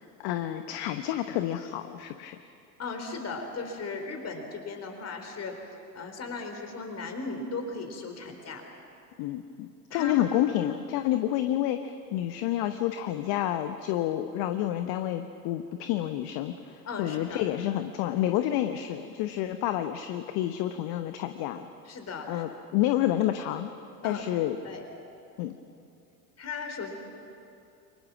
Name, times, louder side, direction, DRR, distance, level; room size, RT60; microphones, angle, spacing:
voice 1, 0.0-2.4 9.2-21.7 22.3-23.7 24.0-24.6 25.4-25.6, left 12 dB, 50° left, 8 dB, 1.1 m, -29 dB
voice 2, 2.8-5.5 5.9-8.6 9.9-10.2 16.8-17.4 21.9-22.4 24.0-24.2 24.6-24.8 26.4-26.9, left 4 dB, 30° left, 4 dB, 4.2 m, -37 dB
28.0 x 23.5 x 6.1 m, 2.6 s
figure-of-eight pair, 75°, 50 cm